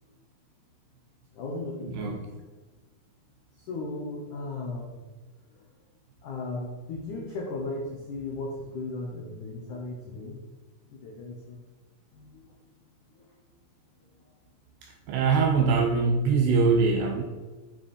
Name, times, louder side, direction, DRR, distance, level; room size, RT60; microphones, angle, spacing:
voice 1, 1.3-2.3 3.6-5.0 5.5-5.6 6.2-10.4 10.9-11.7 12.1-12.6 13.1-13.3, left 2 dB, 80° left, -2 dB, 1.7 m, -36 dB
voice 2, 15.1-17.2, right 4 dB, 85° right, 3 dB, 2.4 m, -22 dB
9.3 x 6.2 x 4.4 m, 1.3 s
omnidirectional pair, 5.5 m